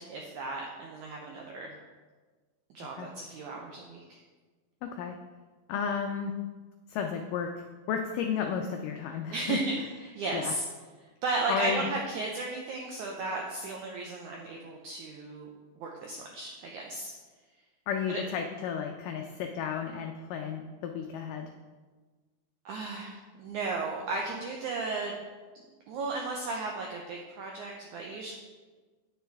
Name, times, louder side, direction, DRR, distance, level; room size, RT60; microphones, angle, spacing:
voice 1, 0.0-1.7 2.7-4.2 9.3-10.6 11.0-15.5 15.8-17.1 18.1-18.2 22.6-25.2 25.9-28.3, right 3 dB, 90° right, 0 dB, 1.7 m, -35 dB
voice 2, 4.8-5.2 5.7-6.3 6.9-7.5 7.9-9.6 10.3-10.5 11.5-11.8 17.9-21.5, left 7 dB, 90° left, 4 dB, 1.8 m, -33 dB
9.2 x 9.0 x 3.4 m, 1.4 s
omnidirectional pair, 4.4 m